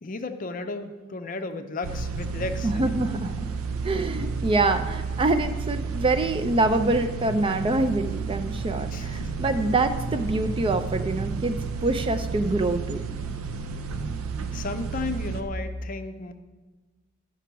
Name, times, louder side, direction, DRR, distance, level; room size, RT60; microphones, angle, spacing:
voice 1, 0.0-3.0 8.9-9.3 14.5-16.3, left 3 dB, 40° left, 8 dB, 0.5 m, -34 dB
sound 1, 1.8-15.4, right 5 dB, 85° right, 0.6 m, -31 dB
voice 2, 2.6-3.3 3.8-13.0, right 2 dB, 25° right, 9 dB, 0.4 m, -25 dB
13.0 x 5.9 x 4.6 m, 1.3 s
head